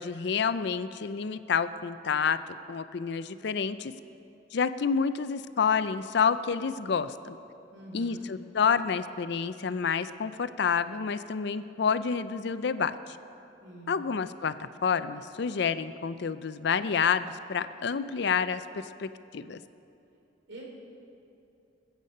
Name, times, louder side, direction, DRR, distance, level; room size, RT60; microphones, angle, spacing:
voice 1, 0.0-2.4 2.7-3.9 4.5-7.4 7.9-13.2 13.9-19.6, left 6 dB, 60° left, 13 dB, 0.5 m, -29 dB
voice 2, 7.7-8.3 13.6-14.0 20.5-20.6, right 2 dB, 75° right, -2 dB, 3.2 m, -45 dB
21.0 x 8.2 x 5.4 m, 2.7 s
head